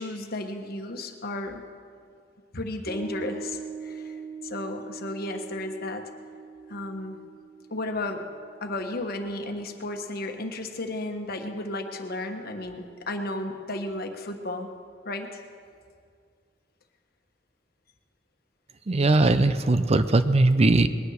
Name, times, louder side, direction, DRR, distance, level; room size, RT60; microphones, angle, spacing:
voice 1, 0.0-1.6 2.5-4.2 4.4-6.1 6.7-7.2 7.7-8.3 8.6-14.7 15.0-15.4, left 2 dB, 55° left, 5 dB, 1.3 m, -33 dB
Piano, 2.9-9.6, right 5 dB, 15° right, 2.4 m, -42 dB
voice 2, 18.9-20.9, right 2 dB, 35° right, 11 dB, 0.5 m, -20 dB
20.5 x 9.7 x 6.5 m, 2.2 s
head